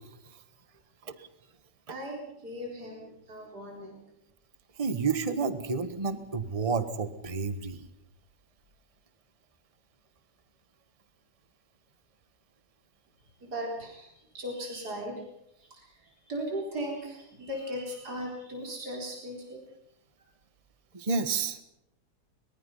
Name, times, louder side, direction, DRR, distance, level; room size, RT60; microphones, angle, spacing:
voice 1, 1.9-4.0 13.4-15.3 15.6-19.6, equal, 60° right, 0 dB, 4.7 m, -38 dB
voice 2, 4.8-7.8 20.9-21.6, right 4 dB, 20° right, 11 dB, 1.3 m, -30 dB
24.0 x 22.0 x 5.6 m, 0.82 s
omnidirectional pair, 2.0 m